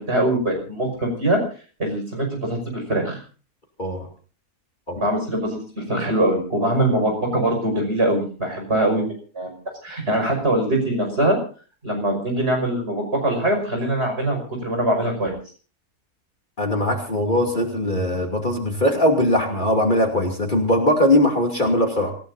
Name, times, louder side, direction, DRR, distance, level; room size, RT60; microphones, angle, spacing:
voice 1, 0.0-1.4 1.8-3.2 4.9-9.1 9.3-9.5 9.8-11.4 11.8-15.4, right 1 dB, 45° right, 3 dB, 6.2 m, -22 dB
voice 2, 16.6-22.1, left 1 dB, 30° left, 1 dB, 3.0 m, -20 dB
26.5 x 16.5 x 2.7 m, 0.39 s
omnidirectional pair, 1.6 m